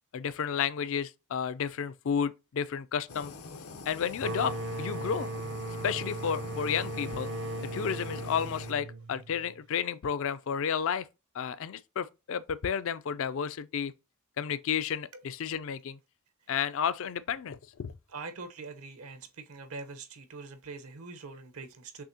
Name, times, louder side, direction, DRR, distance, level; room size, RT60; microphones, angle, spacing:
voice 1, 0.1-3.3 3.9-5.3 5.8-7.3 7.7-11.1 11.3-13.9 14.4-16.0 16.5-17.9, left 7 dB, 60° left, 0.4 m, -32 dB
Fire, 3.1-8.7, left 4 dB, 85° left, 0.8 m, -44 dB
sound 1, 4.2-9.6, right 2 dB, 55° right, 0.5 m, -37 dB
voice 2, 18.1-22.0, right 4 dB, 75° right, 0.9 m, -43 dB
6.1 x 2.8 x 2.8 m
head